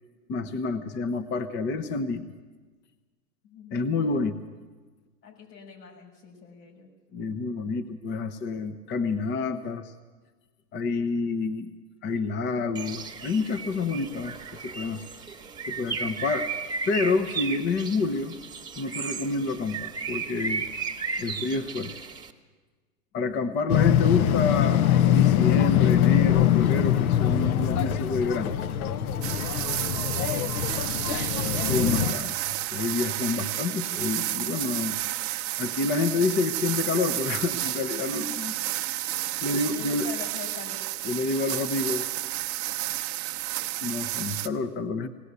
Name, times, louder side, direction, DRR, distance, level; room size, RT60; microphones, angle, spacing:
voice 1, 0.3-2.3 3.7-4.4 7.1-9.9 10.7-11.7 12.0-15.0 15.7-16.5 16.9-18.4 18.8-20.7 21.2-21.9 23.1-28.5 31.7-32.4 32.7-35.0 35.6-38.5 39.4-40.1 41.0-42.1 43.8-45.1, left 4 dB, 20° left, 10 dB, 0.9 m, -28 dB
voice 2, 3.4-4.0 5.2-6.9 23.1-23.6 30.3-31.9 38.0-38.6 39.0-40.8, left 6 dB, 80° left, 2 dB, 6.8 m, -45 dB
Bird, 12.7-22.3, right 5 dB, 10° right, 1.3 m, -35 dB
sound 1, 23.7-32.1, left 11 dB, 60° left, 1.0 m, -23 dB
sound 2, 29.2-44.5, right 15 dB, 30° right, 0.8 m, -31 dB
19.5 x 18.5 x 8.2 m, 1.4 s
hypercardioid pair, 130°, 49 cm